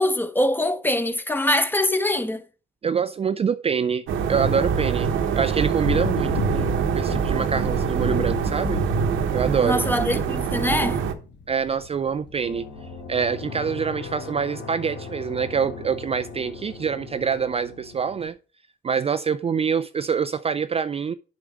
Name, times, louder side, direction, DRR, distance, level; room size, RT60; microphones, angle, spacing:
voice 1, 0.0-2.4 9.6-11.0, left 1 dB, 10° left, 1.0 m, -23 dB
voice 2, 2.8-5.1 5.4-8.8 9.3-9.8 11.5-12.7 13.1-18.4 18.8-21.1, right 6 dB, 30° right, 0.4 m, -25 dB
sound 1, 4.1-11.1, right 7 dB, 85° right, 1.1 m, -24 dB
Thunder / Rain, 5.1-14.4, left 3 dB, 65° left, 1.4 m, -34 dB
sound 2, 12.4-18.3, left 4 dB, 80° left, 2.5 m, -39 dB
7.7 x 4.9 x 6.2 m
cardioid pair, 90°, 20 cm